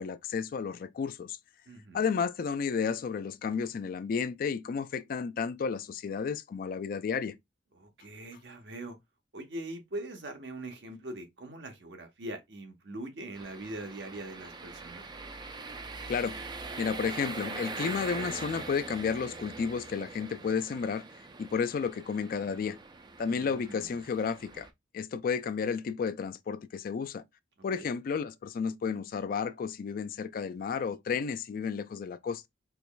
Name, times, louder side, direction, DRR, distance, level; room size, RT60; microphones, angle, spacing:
voice 1, 0.0-1.4 1.9-7.4 16.1-16.4 16.8-21.0 21.4-22.8 23.2-24.7 24.9-27.2 27.6-32.4, left 6 dB, 55° left, 0.3 m, -32 dB
voice 2, 1.7-2.0 7.8-9.0 9.3-15.1 23.2-23.9 27.7-27.9, right 1 dB, 70° right, 1.0 m, -42 dB
sound 1, 13.3-24.7, right 3 dB, 25° right, 0.4 m, -42 dB
4.5 x 3.0 x 2.2 m
head